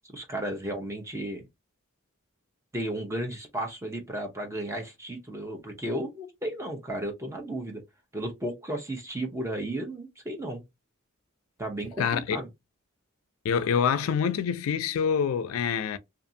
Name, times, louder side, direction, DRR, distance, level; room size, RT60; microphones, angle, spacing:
voice 1, 0.1-1.4 2.7-7.8 8.1-10.6 11.6-12.5, right 1 dB, 15° right, 0.7 m, -34 dB
voice 2, 12.0-12.4 13.4-16.0, left 7 dB, 85° left, 0.4 m, -26 dB
2.5 x 2.4 x 2.6 m
head